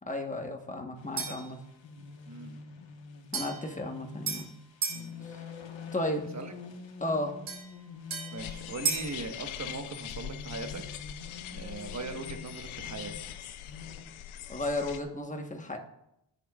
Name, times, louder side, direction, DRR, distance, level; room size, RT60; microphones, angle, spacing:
voice 1, 0.1-1.6 3.3-4.5 5.9-6.2 7.0-7.4 14.5-15.8, left 1 dB, 15° left, 3 dB, 1.2 m, -33 dB
sound 1, 0.9-14.0, left 5 dB, 65° left, 1.4 m, -46 dB
sound 2, 1.2-1.5 3.3-5.1 7.5-9.2, right 6 dB, 75° right, 2.9 m, -35 dB
voice 2, 2.3-2.6 4.9-5.3 6.3-6.5 8.3-10.8 11.5-13.1, right 3 dB, 35° right, 5 dB, 1.3 m, -40 dB
sound 3, 8.4-15.0, left 10 dB, 85° left, 0.7 m, -42 dB
17.0 x 7.9 x 2.4 m, 0.82 s
wide cardioid pair, 115°, 48 cm